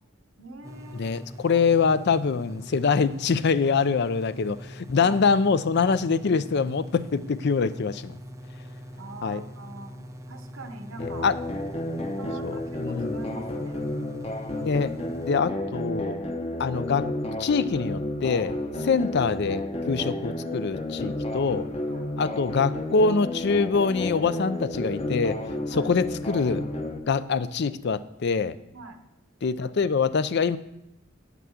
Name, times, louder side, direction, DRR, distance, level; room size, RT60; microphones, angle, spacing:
voice 1, 0.4-1.9 4.9-5.2 8.9-10.0 10.3-11.3 12.0-13.8 18.7-18.9 21.9-22.1 25.7-25.9 28.7-29.0, right 3 dB, 70° right, 7 dB, 0.9 m, -44 dB
sound 1, 0.6-15.4, equal, 15° right, 0.6 m, -43 dB
voice 2, 0.9-8.2 9.2-9.4 11.0-11.3 12.2-13.2 14.6-16.2 16.6-17.1 17.4-18.5 18.9-21.7 22.2-25.4 25.7-26.6 27.1-28.6 29.4-30.6, left 5 dB, 55° left, 15 dB, 0.5 m, -24 dB
sound 2, 11.0-27.0, left 1 dB, 30° left, 0.9 m, -32 dB
9.4 x 6.0 x 7.0 m, 0.86 s
head